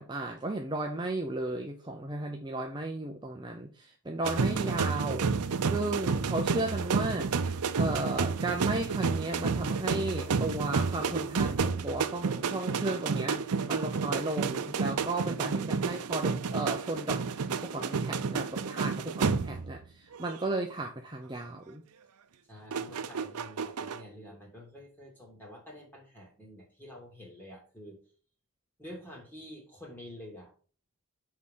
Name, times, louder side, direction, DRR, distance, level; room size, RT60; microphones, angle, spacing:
voice 1, 0.0-21.8, right 2 dB, 20° right, 2 dB, 0.7 m, -35 dB
sound 1, 4.2-19.8 20.1-20.5 22.7-24.0, right 5 dB, 90° right, 0.6 m, -30 dB
voice 2, 22.5-28.0 28.8-30.5, left 1 dB, 10° left, -2 dB, 2.7 m, -48 dB
6.5 x 4.8 x 5.5 m, 0.38 s
head